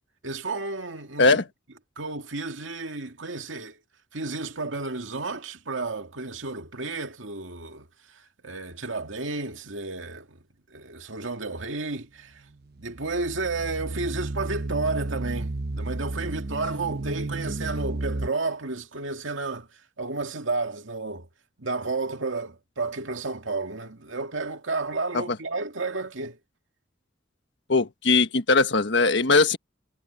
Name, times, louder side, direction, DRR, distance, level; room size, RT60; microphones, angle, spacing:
voice 1, 0.2-1.4 2.0-3.8 4.1-7.9 8.4-10.4 10.7-12.4 12.8-19.7 20.0-21.3 21.6-26.4, right 3 dB, 85° right, 2.2 m, -32 dB
sound 1, 12.6-18.3, right 2 dB, 55° right, 0.9 m, -32 dB
voice 2, 27.7-29.6, left 3 dB, 65° left, 1.5 m, -20 dB
head